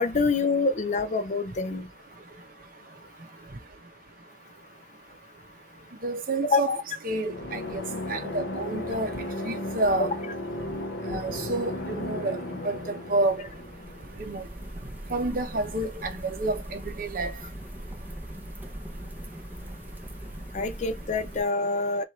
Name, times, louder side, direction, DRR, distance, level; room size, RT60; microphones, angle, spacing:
voice 1, 0.0-1.9 6.4-6.8 10.0-10.1 20.5-22.0, left 3 dB, 40° left, 0.5 m, -26 dB
voice 2, 6.0-6.7 7.0-7.8 8.1-9.1 9.4-10.1 11.1-12.4 12.6-13.4 14.2-14.5 15.1-17.3, right 2 dB, 50° right, 0.9 m, -29 dB
sound 1, 7.2-14.9, left 1 dB, 85° left, 0.8 m, -35 dB
sound 2, 13.2-21.4, right 1 dB, 10° right, 0.8 m, -40 dB
4.7 x 2.5 x 4.3 m
head